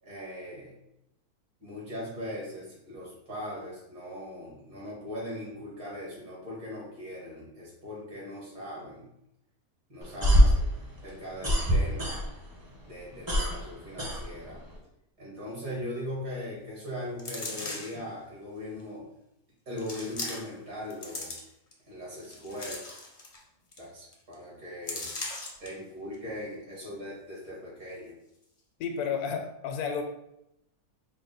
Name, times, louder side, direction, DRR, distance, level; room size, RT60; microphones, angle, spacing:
voice 1, 0.0-0.7 1.6-9.1 9.9-10.6 11.0-12.2 12.8-14.6 15.2-19.1 19.7-21.3 21.9-22.8 23.8-25.1 25.6-28.1, left 1 dB, 70° right, -5 dB, 2.1 m, -39 dB
sound 1, 10.0-12.6 12.9-14.8, equal, 20° right, 0.6 m, -24 dB
sound 2, 17.2-18.0 18.8-18.9 19.8-20.6 20.9-21.7 22.2-23.4 23.7-23.8 24.1-24.3 24.9-25.7 26.1-26.2, left 2 dB, 45° left, 0.5 m, -38 dB
voice 2, 28.8-30.0, left 6 dB, 80° left, 6 dB, 1.1 m, -31 dB
4.7 x 2.1 x 3.9 m, 0.82 s
omnidirectional pair, 1.6 m